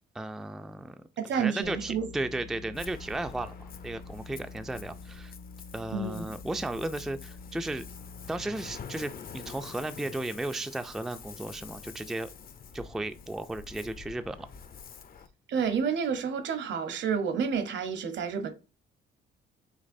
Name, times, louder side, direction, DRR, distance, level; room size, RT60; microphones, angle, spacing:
voice 1, 0.1-1.0 1.3-5.3 5.7-7.8 8.3-12.3 12.7-14.5, right 2 dB, ahead, 0.3 m, -35 dB
voice 2, 1.2-2.1 5.9-6.3 15.5-18.5, right 6 dB, 65° right, 0.9 m, -30 dB
sound 1, 1.6-8.5, left 4 dB, 65° left, 1.0 m, -46 dB
Ocean, 2.7-15.3, left 6 dB, 45° left, 0.6 m, -47 dB
5.2 x 3.3 x 2.6 m
cardioid pair, 90°, 20 cm